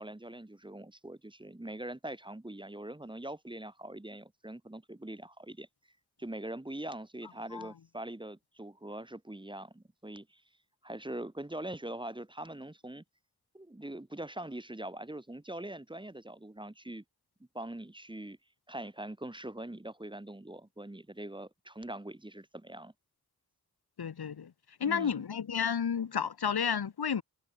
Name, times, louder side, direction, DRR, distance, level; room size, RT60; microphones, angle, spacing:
voice 1, 0.0-5.7 6.2-10.4 10.8-13.0 13.5-17.0 17.5-18.4 18.7-22.9 24.8-25.2, right 1 dB, 15° right, 1.8 m, -42 dB
voice 2, 24.0-24.5 24.8-27.2, left 7 dB, 80° left, 1.8 m, -31 dB
wide cardioid pair, 120°, 37 cm